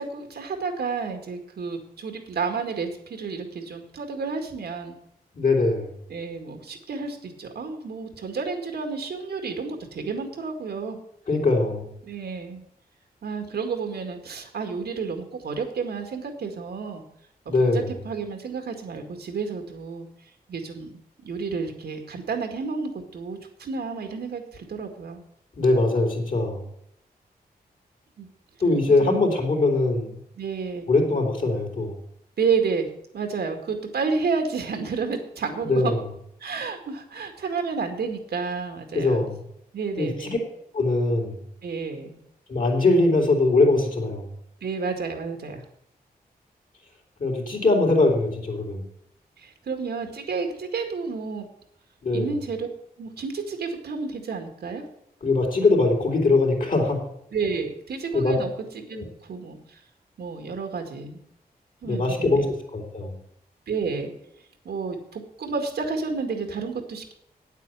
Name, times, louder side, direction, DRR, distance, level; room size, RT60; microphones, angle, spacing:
voice 1, 0.0-5.0 6.1-11.0 12.0-12.6 13.2-17.0 17.5-20.1 20.5-25.2 28.2-28.3 29.0-29.2 30.4-30.9 32.4-32.9 33.1-35.9 36.4-39.3 39.7-40.4 41.6-42.2 44.6-45.6 49.4-51.5 52.1-52.7 53.0-54.9 57.3-59.8 60.2-61.2 61.8-62.5 63.7-64.1 64.6-67.1, right 5 dB, 85° right, 5 dB, 2.0 m, -31 dB
voice 2, 5.3-6.0 11.3-11.9 17.5-17.9 25.6-26.6 28.6-30.2 30.9-32.0 35.6-36.0 38.9-39.4 40.0-40.4 40.7-41.4 42.5-44.3 47.2-48.8 52.0-52.3 55.2-57.0 58.1-58.3 58.9-59.0 61.8-62.4 62.7-63.2, left 2 dB, 55° left, 2 dB, 3.5 m, -22 dB
9.1 x 8.3 x 7.6 m, 0.73 s
cardioid pair, 75°, 16 cm